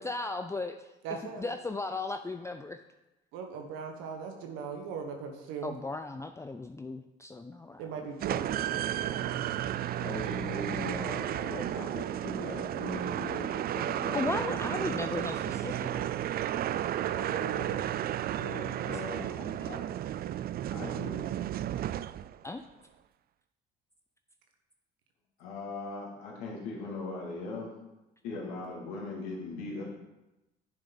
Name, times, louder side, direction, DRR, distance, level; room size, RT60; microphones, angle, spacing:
voice 1, 0.0-0.9 1.4-2.8 5.6-7.9 14.1-16.1 19.1-19.7 22.4-22.6, left 3 dB, 15° left, 8 dB, 0.5 m, -36 dB
voice 2, 1.0-1.5 3.3-5.8 7.8-9.8 17.0-17.8, right 5 dB, 85° right, 3 dB, 1.2 m, -40 dB
sound 1, 8.2-22.5, right 11 dB, 50° right, 0.4 m, -33 dB
voice 3, 9.9-14.7 17.4-17.7 18.3-19.2 19.6-19.8 20.7-21.2 25.4-27.7 28.2-29.8, left 2 dB, 90° left, -3 dB, 2.4 m, -39 dB
10.0 x 6.6 x 4.0 m, 1.0 s
supercardioid pair, 70°, 21 cm